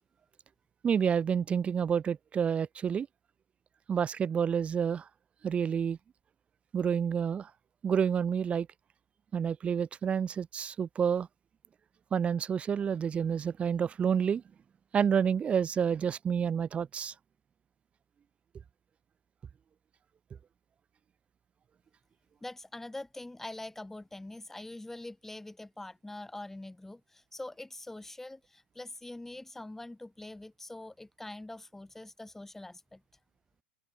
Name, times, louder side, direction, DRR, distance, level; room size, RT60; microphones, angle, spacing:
voice 1, 0.8-3.1 3.9-5.1 5.4-6.0 6.7-7.5 7.8-8.7 9.3-11.3 12.1-14.4 14.9-17.1, right 7 dB, 20° right, 0.7 m, -29 dB
voice 2, 22.4-33.0, left 2 dB, 5° left, 2.5 m, -44 dB
open air
hypercardioid pair, 95°, 5 cm